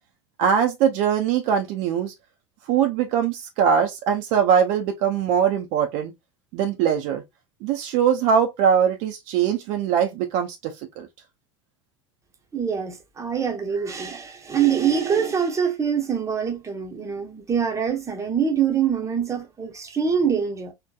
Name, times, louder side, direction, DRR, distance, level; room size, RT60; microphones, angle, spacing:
voice 1, 0.4-2.1 2.7-6.1 6.5-7.2 7.6-11.1, right 8 dB, 55° right, 0.5 m, -22 dB
voice 2, 12.5-20.7, right 7 dB, 20° right, 0.7 m, -24 dB
2.8 x 2.1 x 2.2 m
hypercardioid pair, 80°, 15 cm